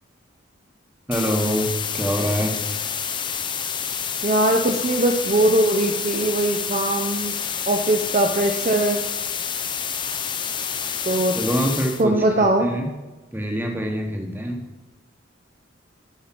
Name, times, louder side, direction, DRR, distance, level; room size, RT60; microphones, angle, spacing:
sound 1, 1.1-12.0, left 7 dB, 25° left, 0.5 m, -28 dB
voice 1, 1.1-2.6 11.3-12.9 13.3-14.6, equal, 10° right, 2 dB, 1.1 m, -25 dB
voice 2, 4.2-7.4 7.7-9.0 11.1-11.4 12.0-12.7, right 1 dB, 35° right, 3 dB, 0.6 m, -20 dB
12.0 x 5.0 x 5.9 m, 1.1 s
head